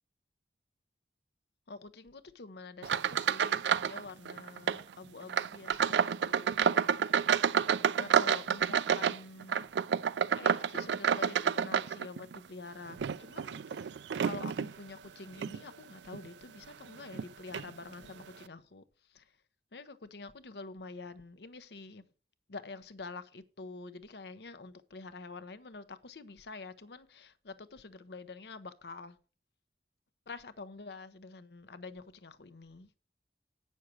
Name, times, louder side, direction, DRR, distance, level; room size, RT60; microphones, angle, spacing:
voice 1, 1.7-6.6 7.9-9.7 10.3-18.8 19.1-19.3 19.7-22.0 22.5-29.2 30.3-32.9, left 3 dB, 70° left, 0.8 m, -47 dB
sound 1, 2.8-4.0 4.3-4.8 5.3-12.4 12.9-14.7 15.3-15.6 16.1-16.3 17.1-17.2 17.5-17.7, right 7 dB, 85° right, 0.4 m, -29 dB
8.7 x 6.4 x 6.3 m
head